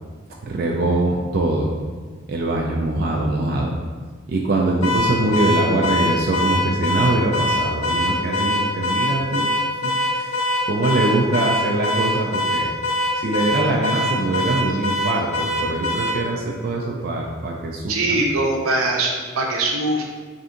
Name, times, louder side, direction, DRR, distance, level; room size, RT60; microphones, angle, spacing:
voice 1, 0.4-1.7 2.3-3.7 4.3-9.5 9.8-12.7 13.1-18.2, right 2 dB, 45° right, -1 dB, 0.3 m, -23 dB
Car / Alarm, 4.8-16.2, left 1 dB, 75° left, 0.4 m, -23 dB
voice 2, 17.9-20.0, right 2 dB, 85° right, 0 dB, 0.6 m, -21 dB
3.4 x 2.7 x 3.7 m, 1.5 s
head